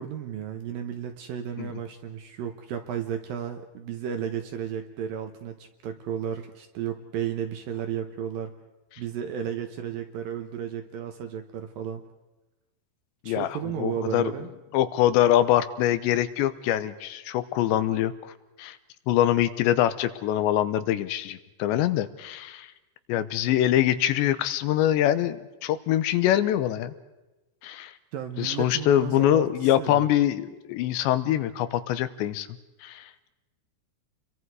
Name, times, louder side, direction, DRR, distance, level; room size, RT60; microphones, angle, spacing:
voice 1, 0.0-8.5 9.0-12.1 13.2-14.5 28.1-30.1, right 9 dB, 70° right, 6 dB, 2.4 m, -33 dB
voice 2, 13.8-14.3 14.7-18.3 18.6-18.8 19.1-22.7 23.1-26.9 27.6-27.9 28.4-32.5 32.8-33.3, left 12 dB, 80° left, 12 dB, 3.1 m, -24 dB
30.0 x 23.0 x 4.8 m, 1.1 s
omnidirectional pair, 5.1 m